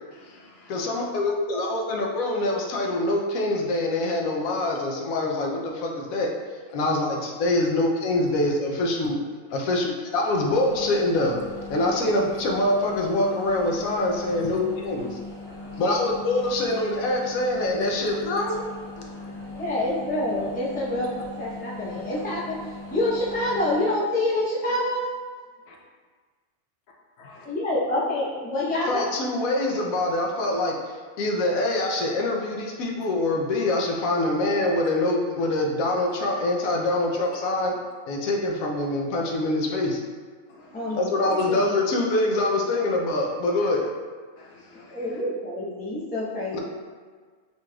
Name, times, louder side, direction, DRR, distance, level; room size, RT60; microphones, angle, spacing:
voice 1, 0.1-0.9 7.6-7.7 9.6-9.8 14.4-14.5 15.5-16.0 16.4-16.6 17.9-18.0 18.3-18.6 19.0-19.9 25.7-25.8 27.2-27.5 29.6-29.9 40.5-41.0 41.3-41.5 43.6-43.7 44.4-45.2, left 3 dB, 60° left, -1 dB, 0.7 m, -47 dB
voice 2, 0.7-6.3 6.7-9.2 9.5-11.4 11.7-15.2 15.8-18.6 28.9-30.7 31.2-37.7 38.1-40.0 41.0-43.9 46.5-46.6, left 2 dB, 90° left, 0 dB, 1.0 m, -24 dB
voice 3, 1.3-1.8 19.5-25.1 27.4-29.1 40.7-41.8 44.9-46.6, left 1 dB, 10° left, -8 dB, 0.4 m, -27 dB
sound 1, 10.4-23.9, left 2 dB, 40° left, 1.3 m, -39 dB
4.0 x 3.1 x 2.2 m, 1.6 s
omnidirectional pair, 1.4 m